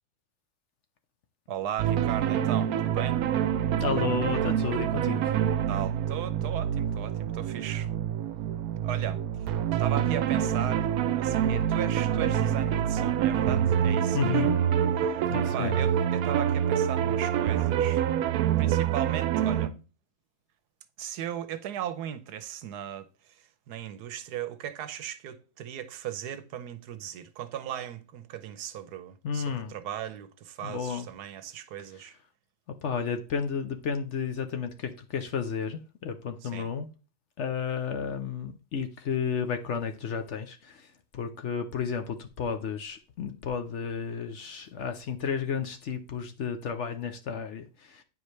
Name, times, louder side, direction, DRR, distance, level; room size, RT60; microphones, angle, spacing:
voice 1, 1.5-3.2 5.7-7.9 8.8-9.2 9.8-10.9 11.2-14.4 15.5-18.0 18.6-19.8 21.0-32.1 36.4-36.7, right 10 dB, 90° right, 1.2 m, -37 dB
sound 1, 1.8-19.7, right 9 dB, 70° right, 1.0 m, -26 dB
voice 2, 3.7-5.4 14.1-14.6 15.3-15.8 29.2-29.8 30.6-31.1 32.0-32.1 32.8-36.9 37.4-48.0, left 6 dB, 60° left, 0.8 m, -32 dB
9.2 x 4.8 x 3.2 m
omnidirectional pair, 1.7 m